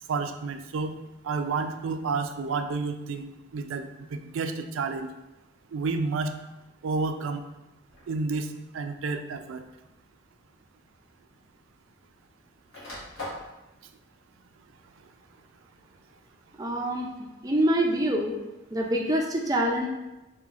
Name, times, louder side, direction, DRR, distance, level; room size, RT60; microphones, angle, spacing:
voice 1, 0.1-0.9 1.2-5.1 5.7-6.3 6.8-7.4 8.1-8.5 8.7-9.6, right 4 dB, 85° right, 8 dB, 0.4 m, -30 dB
sound 1, 7.9-8.2 9.2-9.3 10.7-10.8 11.1-12.2 12.5-13.5, left 1 dB, 80° left, 1.3 m, -40 dB
voice 2, 16.6-17.1 17.4-18.4 18.7-19.9, right 1 dB, 20° right, 0 dB, 0.4 m, -25 dB
4.8 x 3.0 x 2.4 m, 1.0 s
head